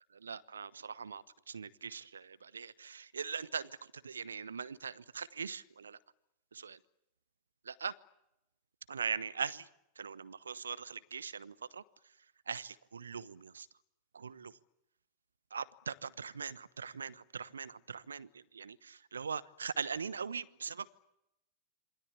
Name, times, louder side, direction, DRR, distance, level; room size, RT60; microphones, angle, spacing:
voice 1, 0.1-6.0 6.5-6.8 7.6-7.9 8.9-9.7 10.0-11.8 12.5-13.7 14.1-14.5 15.5-21.0, right 6 dB, 70° right, 18 dB, 1.1 m, -41 dB
27.5 x 24.0 x 8.5 m, 0.84 s
figure-of-eight pair, 90°, 0 cm